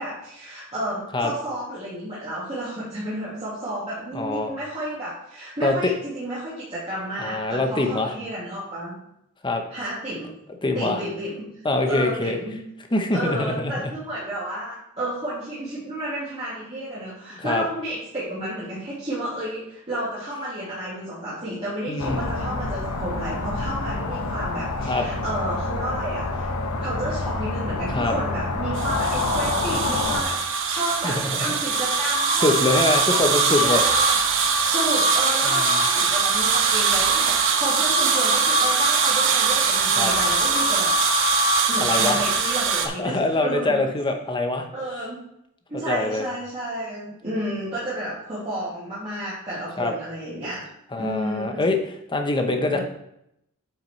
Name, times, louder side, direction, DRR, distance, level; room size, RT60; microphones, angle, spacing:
voice 1, 0.0-9.0 9.7-10.3 10.7-11.4 11.9-12.6 13.1-26.5 26.8-34.2 34.6-41.3 41.7-43.8 44.7-45.2 45.7-50.6 51.0-51.6 52.7-52.8, right 1 dB, 30° right, -11 dB, 2.4 m, -31 dB
voice 2, 4.1-4.5 5.6-5.9 7.2-8.1 9.4-9.6 10.6-11.0 11.6-12.4 12.9-13.7 17.4-17.6 21.9-22.4 24.9-25.1 27.9-28.1 31.0-31.6 32.3-33.8 35.5-35.8 40.0-40.1 41.8-42.2 42.8-44.7 45.9-46.3 49.8-49.9 50.9-51.8 52.1-52.8, left 2 dB, 20° left, 4 dB, 0.9 m, -24 dB
sound 1, 22.0-30.2, left 3 dB, 80° left, 1.0 m, -27 dB
sound 2, 28.8-42.9, right 4 dB, 60° right, 0.8 m, -21 dB
8.6 x 5.6 x 3.2 m, 0.78 s
head